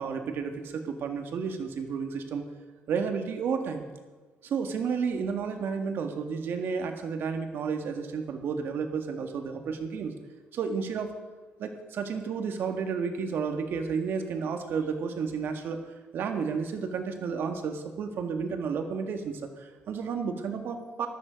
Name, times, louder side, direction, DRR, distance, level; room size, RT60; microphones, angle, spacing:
voice 1, 0.0-2.4 2.9-3.9 4.4-10.2 10.5-11.1 11.6-15.8 16.1-21.1, right 5 dB, 65° right, 5 dB, 1.8 m, -32 dB
14.0 x 13.0 x 5.2 m, 1.3 s
cardioid pair, 110°, 4 cm